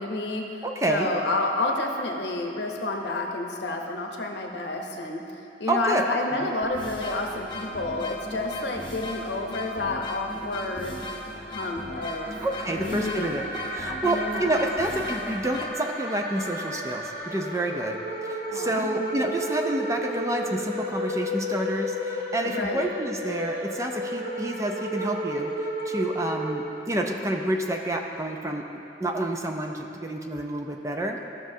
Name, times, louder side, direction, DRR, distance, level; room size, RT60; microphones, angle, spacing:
voice 1, 0.0-0.4 0.9-5.2 5.6-11.0 11.5-12.3 12.7-13.6 14.0-14.5 18.5-19.1 22.4-22.8, left 2 dB, 75° left, 2 dB, 0.8 m, -30 dB
voice 2, 0.6-1.1 5.7-6.0 12.4-25.5 25.9-28.6 29.0-31.3, right 1 dB, 15° right, 2 dB, 0.4 m, -29 dB
sound 1, 6.6-15.7, left 1 dB, 25° left, 0.8 m, -37 dB
sound 2, 11.9-27.2, equal, 65° right, 1.5 m, -33 dB
14.0 x 6.1 x 2.7 m, 2.8 s
head